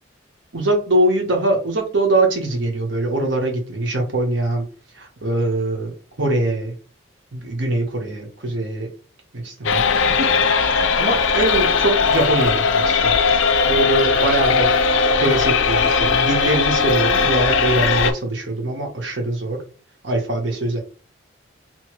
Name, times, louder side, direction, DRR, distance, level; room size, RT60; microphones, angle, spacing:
voice 1, 0.5-4.7 4.9-6.7 7.3-8.9 9.3-10.6 11.0-13.1 13.7-19.6 20.0-20.8, right 2 dB, 70° right, 2 dB, 1.0 m, -22 dB
sound 1, 9.6-18.1, left 5 dB, 85° left, 0.4 m, -18 dB
2.9 x 2.7 x 2.9 m, 0.37 s
head